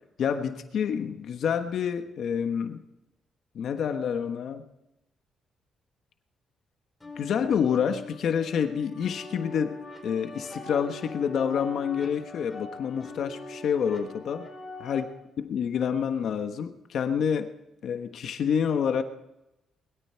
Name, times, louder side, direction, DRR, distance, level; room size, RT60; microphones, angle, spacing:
voice 1, 0.2-2.8 3.5-4.6 7.2-14.5 14.8-15.1 15.4-17.5 17.8-19.0, left 7 dB, 65° left, 7 dB, 1.3 m, -28 dB
sound 1, 7.0-15.0, left 2 dB, 15° left, 4.5 m, -42 dB
21.5 x 13.0 x 4.5 m, 0.89 s
cardioid pair, 120°, 0 cm